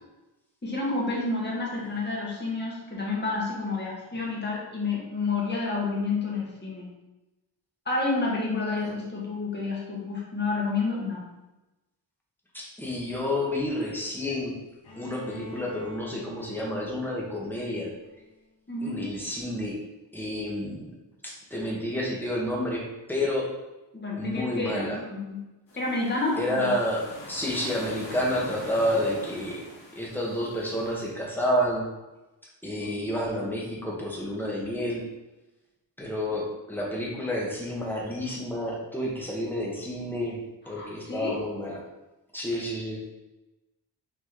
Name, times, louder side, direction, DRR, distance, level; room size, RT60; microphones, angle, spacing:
voice 1, 0.6-6.9 7.9-11.2 18.7-19.0 23.9-25.4 25.8-26.7 32.8-32.9 40.6-41.4, left 3 dB, 25° left, -4 dB, 1.8 m, -29 dB
voice 2, 12.5-14.5 15.0-17.9 18.8-19.8 20.1-20.9 21.2-23.5 24.2-25.0 26.4-29.6 29.9-31.9 32.6-35.0 36.0-41.8 42.3-43.0, left 1 dB, 5° left, -3 dB, 1.5 m, -30 dB
Bowed string instrument, 14.8-18.7, left 3 dB, 60° left, 2.1 m, -47 dB
sound 1, 25.7-31.1, left 1 dB, 90° left, 2.0 m, -43 dB
6.4 x 4.0 x 3.7 m, 1.0 s
wide cardioid pair, 120°, 44 cm